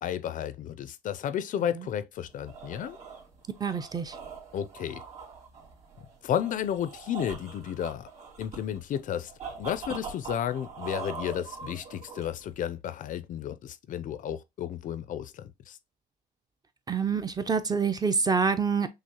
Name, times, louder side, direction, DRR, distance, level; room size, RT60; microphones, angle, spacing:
voice 1, 0.0-3.0 4.5-5.0 6.2-8.1 8.4-9.3 9.6-15.8, left 10 dB, 50° left, 0.4 m, -32 dB
sound 1, 2.2-12.5, right 5 dB, 40° right, 2.2 m, -43 dB
voice 2, 3.6-4.1 16.9-18.9, right 5 dB, 25° right, 0.5 m, -26 dB
6.1 x 2.0 x 2.9 m
cardioid pair, 110°, 17 cm